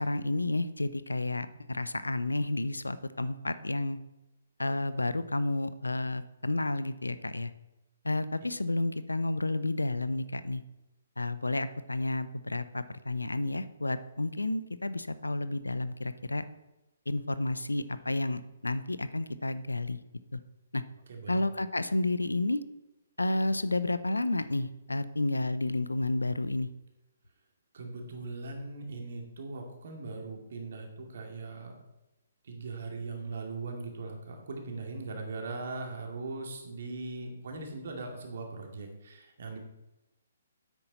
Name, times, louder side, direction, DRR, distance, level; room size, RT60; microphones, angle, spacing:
voice 1, 0.0-4.0 4.6-7.5 8.0-10.6 11.2-16.4 17.1-20.0 20.3-20.4 20.7-20.8 21.3-22.6 23.2-26.7, left 2 dB, 85° left, 14 dB, 0.6 m, -31 dB
voice 2, 21.1-21.5 27.7-31.7 32.4-39.6, right 3 dB, 55° right, 2 dB, 2.3 m, -40 dB
9.8 x 8.3 x 4.1 m, 0.97 s
figure-of-eight pair, 135°, 0 cm